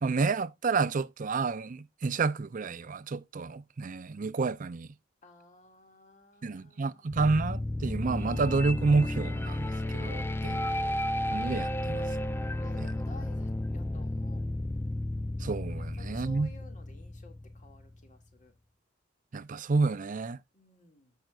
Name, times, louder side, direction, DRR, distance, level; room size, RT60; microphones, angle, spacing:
voice 1, 0.0-4.9 6.4-10.6 11.3-12.1 12.8-12.9 15.4-16.5 19.3-20.4, right 4 dB, 45° right, 0.5 m, -29 dB
voice 2, 5.2-7.2 12.6-14.4 15.8-18.5 20.5-21.1, left 2 dB, 40° left, 2.2 m, -55 dB
sound 1, 7.1-18.0, left 1 dB, 10° left, 0.5 m, -33 dB
15.0 x 5.8 x 2.4 m
head